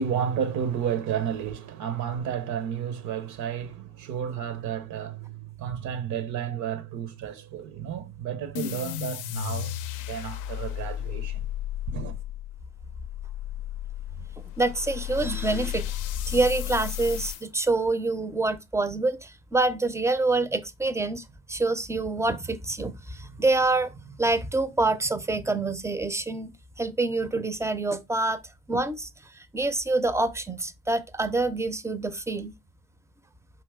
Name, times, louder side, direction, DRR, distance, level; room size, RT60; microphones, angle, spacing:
voice 1, 0.0-9.7 10.1-11.4 11.9-12.2, right 8 dB, 70° right, 0.8 m, -31 dB
sound 1, 8.5-17.4, left 13 dB, 75° left, 0.5 m, -34 dB
voice 2, 14.6-15.9 16.3-26.5 26.8-28.4 28.7-29.1 29.5-32.5, right 2 dB, 10° right, 0.5 m, -26 dB
4.7 x 3.0 x 3.5 m
cardioid pair, 100°, 31 cm